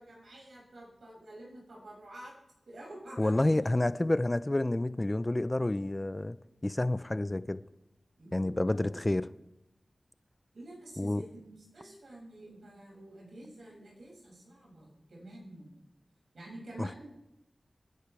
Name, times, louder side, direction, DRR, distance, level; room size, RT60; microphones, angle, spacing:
voice 1, 0.0-2.3 2.7-3.3 3.9-4.0 8.2-9.1 10.5-15.8 16.3-17.1, right 1 dB, 85° right, 6.8 m, -49 dB
voice 2, 3.2-6.4 6.6-7.6 8.3-9.3 11.0-11.2 16.8-16.9, left 1 dB, 30° left, 0.7 m, -29 dB
26.5 x 10.0 x 3.5 m
cardioid pair, 45°, 0 cm